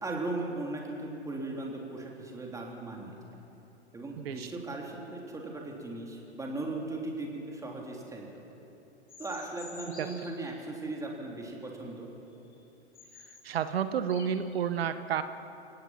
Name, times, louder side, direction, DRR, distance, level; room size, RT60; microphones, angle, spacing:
voice 1, 0.0-3.1 3.9-8.4 9.2-12.1, right 2 dB, 10° right, 0 dB, 3.3 m, -38 dB
voice 2, 4.2-4.5 10.0-10.1 13.4-15.2, right 8 dB, 60° right, 11 dB, 1.1 m, -30 dB
sound 1, 9.1-10.4 12.5-12.6 12.9-13.4 13.9-14.6, left 4 dB, 80° left, 3.7 m, -49 dB
28.5 x 16.5 x 5.9 m, 3.0 s
figure-of-eight pair, 105°, 34 cm